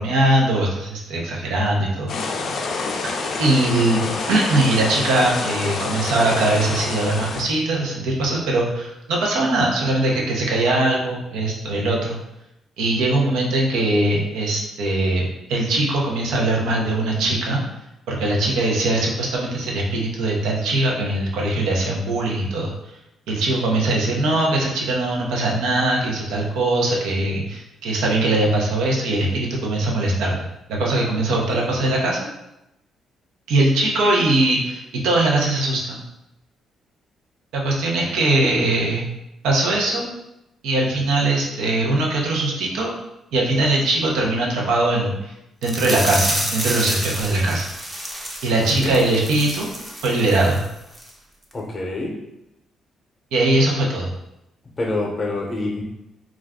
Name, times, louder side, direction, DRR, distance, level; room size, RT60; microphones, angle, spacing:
voice 1, 0.0-2.1 3.4-4.0 4.3-12.2 12.8-15.2 15.5-17.6 18.1-22.7 23.3-32.2 33.5-36.0 37.5-39.0 39.4-40.1 40.6-42.9 43.3-45.3 45.6-47.7 48.4-49.7 50.0-50.6 53.3-54.1, right 2 dB, 90° right, -2 dB, 0.6 m, -21 dB
sound 1, 2.1-7.4, left 3 dB, 65° left, 0.4 m, -27 dB
voice 2, 31.6-31.9 48.4-48.9 51.5-52.1 54.8-55.8, left 2 dB, 30° left, 0 dB, 0.7 m, -27 dB
sound 2, 45.6-50.7 50.9-51.1 51.5-51.6, equal, 15° right, 0.6 m, -29 dB
2.3 x 2.2 x 3.5 m, 0.89 s
cardioid pair, 90°, 0 cm